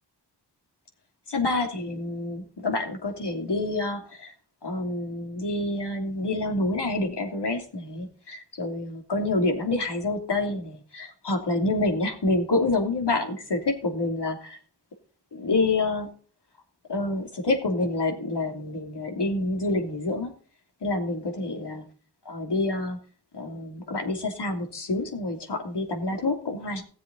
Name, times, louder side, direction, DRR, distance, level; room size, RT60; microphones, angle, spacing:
voice 1, 1.3-4.3 4.6-14.6 15.3-16.1 16.9-20.3 20.8-21.8 22.2-23.0 23.3-26.8, left 2 dB, 85° left, 4 dB, 3.1 m, -27 dB
17.5 x 7.5 x 4.1 m, 0.43 s
wide cardioid pair, 105°, 40 cm